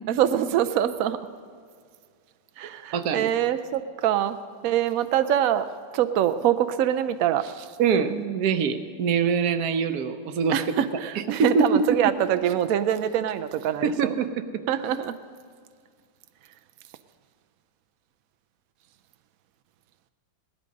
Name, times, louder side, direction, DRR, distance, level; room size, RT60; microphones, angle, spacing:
voice 1, 0.1-1.2 2.6-4.4 4.6-5.7 5.9-7.7 10.5-14.1 14.7-15.2, right 10 dB, 80° right, 10 dB, 0.7 m, -24 dB
voice 2, 2.9-3.3 7.8-10.6 11.2-12.0 13.8-14.6, right 5 dB, 65° right, 10 dB, 1.1 m, -24 dB
17.5 x 12.0 x 5.2 m, 2.1 s
omnidirectional pair, 2.1 m